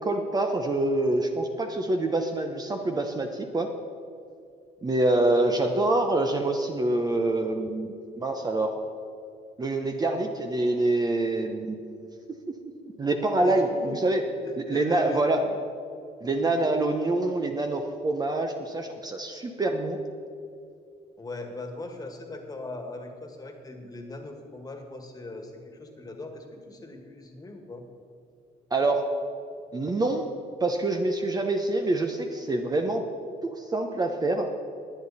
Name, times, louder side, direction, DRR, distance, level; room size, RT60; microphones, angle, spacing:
voice 1, 0.0-3.7 4.8-8.8 9.6-12.1 13.0-14.2 14.7-15.4 16.2-20.0 28.7-29.1 29.7-30.3 30.6-33.1 33.4-34.5, right 2 dB, 25° right, 4 dB, 0.8 m, -26 dB
voice 2, 13.4-14.0 14.4-15.6 21.2-27.8, left 2 dB, 20° left, 4 dB, 1.8 m, -39 dB
20.5 x 8.6 x 4.2 m, 2.5 s
cardioid pair, 110°, 17 cm